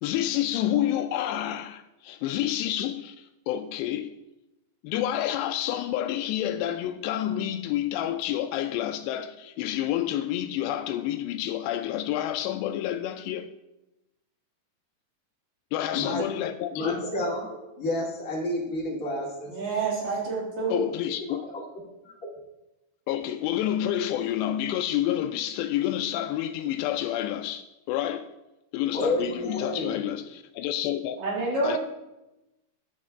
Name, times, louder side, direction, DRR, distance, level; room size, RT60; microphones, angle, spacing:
voice 1, 0.0-4.1 4.8-13.5 15.7-17.0 20.7-21.4 23.1-28.3 28.7-31.2 31.6-31.8, left 12 dB, 85° left, 2.6 m, -29 dB
voice 2, 15.9-16.2 16.7-19.5 21.2-21.6 28.9-30.0, left 1 dB, 25° left, 2.4 m, -30 dB
voice 3, 19.5-20.9 31.2-31.8, right 3 dB, 50° right, 4.5 m, -28 dB
12.0 x 8.6 x 3.6 m
omnidirectional pair, 5.1 m